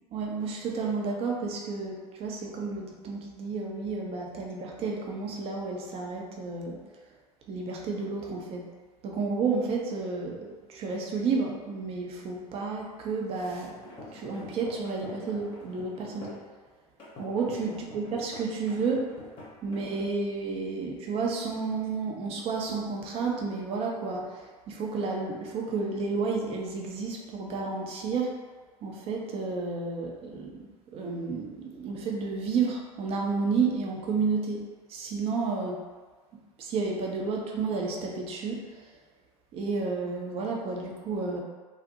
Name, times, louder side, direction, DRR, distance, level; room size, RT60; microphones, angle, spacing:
voice 1, 0.1-6.8 7.5-8.6 9.0-13.7 14.1-16.3 17.2-19.0 19.6-28.3 28.8-30.6 30.9-34.6 34.9-35.8 36.6-38.9 39.5-41.4, right 4 dB, 30° right, -1 dB, 0.5 m, -31 dB
sound 1, 13.7-16.5 17.0-20.1, left 1 dB, 25° left, 0.7 m, -46 dB
2.6 x 2.0 x 2.7 m, 1.4 s
figure-of-eight pair, 75°, 20 cm